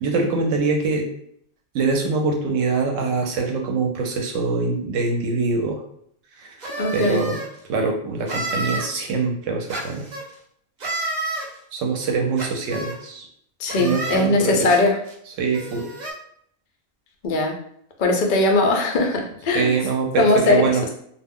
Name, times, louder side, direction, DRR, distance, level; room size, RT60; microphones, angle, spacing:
voice 1, 0.0-1.1 1.7-5.8 6.4-6.5 6.9-7.4 7.7-10.0 11.7-13.3 13.8-14.7 15.4-15.9 19.5-20.8, right 4 dB, 70° right, 1 dB, 0.9 m, -23 dB
sound 1, 6.6-7.5 8.3-8.9 9.7-10.2 10.8-11.5 12.4-13.0 13.7-14.2 15.0-15.1 15.5-16.1, right 2 dB, 90° right, 0.3 m, -30 dB
voice 2, 6.8-7.3 13.6-15.0 17.2-17.5 18.0-19.7 20.2-20.6, left 2 dB, 75° left, 2 dB, 0.4 m, -19 dB
2.4 x 2.1 x 3.5 m, 0.67 s
omnidirectional pair, 1.5 m